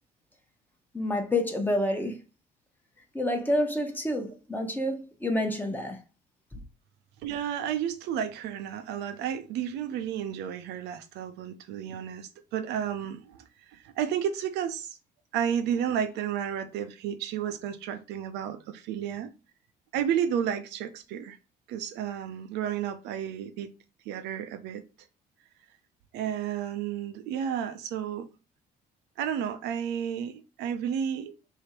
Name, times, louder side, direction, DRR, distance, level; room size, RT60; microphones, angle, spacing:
voice 1, 0.9-2.2 3.1-6.0, left 1 dB, 10° left, 0.9 m, -28 dB
voice 2, 7.2-13.4 13.7-15.0 15.3-19.3 19.9-21.4 21.7-23.7 24.1-24.8 26.1-28.3 29.2-31.3, right 9 dB, 85° right, 0.7 m, -32 dB
3.5 x 2.8 x 4.4 m
cardioid pair, 110°, 17 cm